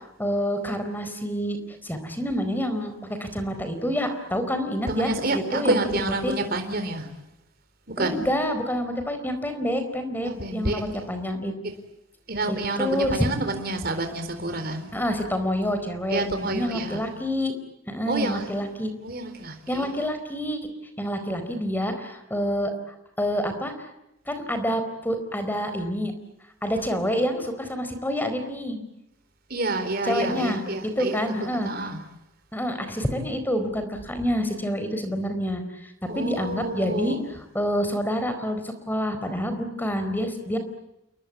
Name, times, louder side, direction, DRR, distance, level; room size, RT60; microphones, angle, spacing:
voice 1, 0.2-5.8 6.2-6.3 8.0-11.5 12.5-13.3 14.9-17.5 17.9-18.9 19.7-20.6 21.0-22.7 23.2-23.7 24.3-26.1 26.6-28.8 30.0-31.7 32.5-37.2 37.5-40.6, equal, 10° left, 4.3 m, -27 dB
voice 2, 4.9-7.1 7.9-8.2 10.2-10.8 12.3-14.9 16.1-17.0 18.1-18.7 19.0-20.0 29.5-32.0 36.1-37.2, right 2 dB, 50° right, 4.1 m, -28 dB
29.5 x 22.5 x 8.6 m
head